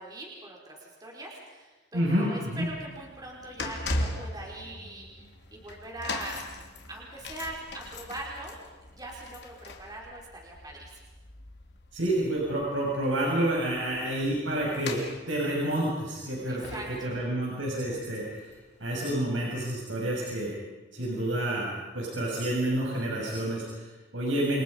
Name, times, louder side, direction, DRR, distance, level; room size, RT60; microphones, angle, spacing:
voice 1, 0.0-5.1 5.5-6.4 6.9-8.7 8.9-11.0 16.5-17.1, right 1 dB, 20° right, -2 dB, 5.1 m, -41 dB
voice 2, 1.9-2.7 11.9-15.0 15.3-18.5 18.8-20.5 20.9-24.6, right 1 dB, 85° right, -3 dB, 6.9 m, -29 dB
sound 1, 2.5-18.9 19.1-19.4 20.2-20.3, left 2 dB, 60° left, 3.4 m, -40 dB
29.5 x 27.0 x 5.5 m, 1.2 s
head